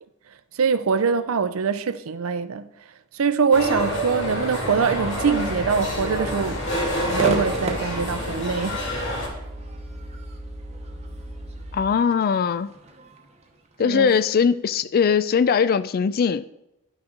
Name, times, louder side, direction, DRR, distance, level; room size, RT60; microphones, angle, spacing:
voice 1, 0.5-2.7 3.1-6.6 7.1-8.8 13.8-14.1, right 5 dB, 75° right, 0.5 m, -23 dB
sound 1, 3.5-9.3, equal, 60° left, 2.5 m, -28 dB
sound 2, 5.0-11.9, equal, ahead, 1.2 m, -37 dB
Crowd / Fireworks, 7.2-14.5, right 2 dB, 30° right, 0.9 m, -35 dB
voice 2, 11.7-12.7 13.8-16.5, left 6 dB, 45° left, 0.3 m, -20 dB
10.0 x 6.1 x 3.8 m
head